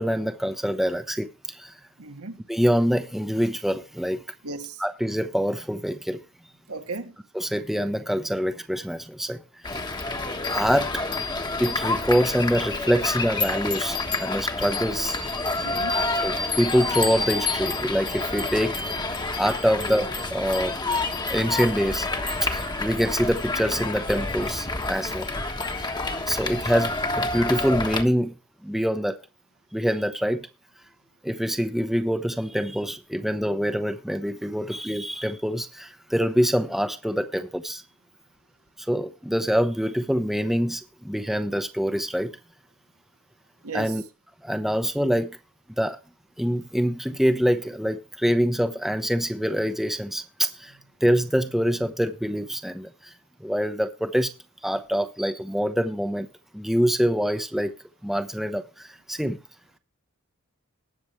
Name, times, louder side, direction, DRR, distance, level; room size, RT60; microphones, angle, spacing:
voice 1, 0.0-1.8 2.5-4.2 4.8-6.2 7.3-9.6 10.0-10.2 10.5-11.0 11.6-15.2 16.2-18.8 19.4-20.8 21.3-22.1 22.4-25.3 25.8-25.9 26.3-28.3 28.6-29.2 29.7-30.5 31.2-37.8 38.8-42.4 43.7-44.0 44.4-45.4 45.8-46.0 46.4-50.7 51.0-53.1 53.4-54.3 54.6-56.3 56.5-57.7 58.0-59.4, equal, ahead, 0.8 m, -25 dB
voice 2, 2.0-2.4 4.4-4.8 6.7-7.1 15.6-16.0 43.6-43.9, right 3 dB, 80° right, 1.6 m, -35 dB
sound 1, 9.6-28.0, left 3 dB, 20° left, 1.3 m, -28 dB
19.5 x 6.9 x 3.1 m
head